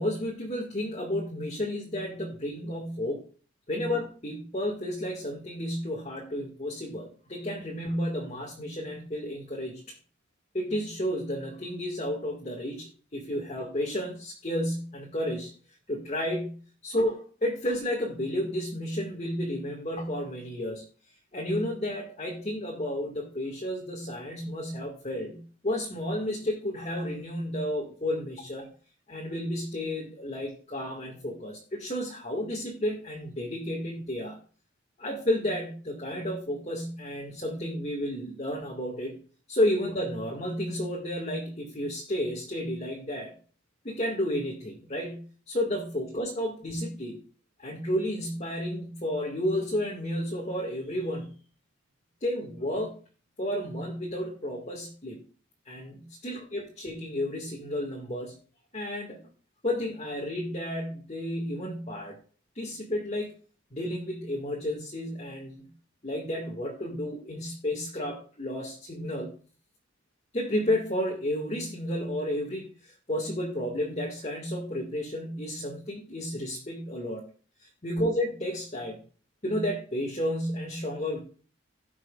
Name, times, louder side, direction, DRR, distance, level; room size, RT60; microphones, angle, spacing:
voice 1, 0.0-3.2 3.7-9.9 10.5-15.5 15.9-20.8 21.3-28.7 29.1-34.4 35.0-39.2 39.5-43.3 43.8-47.2 47.6-51.3 52.2-53.0 53.4-55.2 55.7-58.4 58.7-59.2 59.6-62.2 62.5-63.3 63.7-65.7 66.0-69.3 70.3-77.3 77.6-79.0 79.4-81.2, left 1 dB, 35° left, -3 dB, 2.0 m, -32 dB
18.0 x 6.1 x 2.5 m, 0.38 s
head